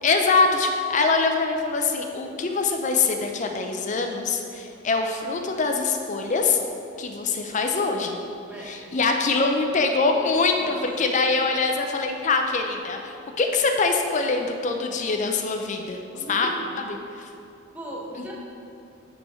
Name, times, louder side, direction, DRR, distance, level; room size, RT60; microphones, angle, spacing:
voice 1, 0.0-6.6 7.0-8.2 8.6-16.0 16.3-16.5 17.2-17.3, left 4 dB, 35° left, 4 dB, 0.5 m, -24 dB
voice 2, 8.5-8.8 10.6-10.9 16.1-16.8 17.7-18.3, right 1 dB, 10° right, -4 dB, 0.9 m, -38 dB
5.6 x 5.2 x 4.3 m, 2.6 s
head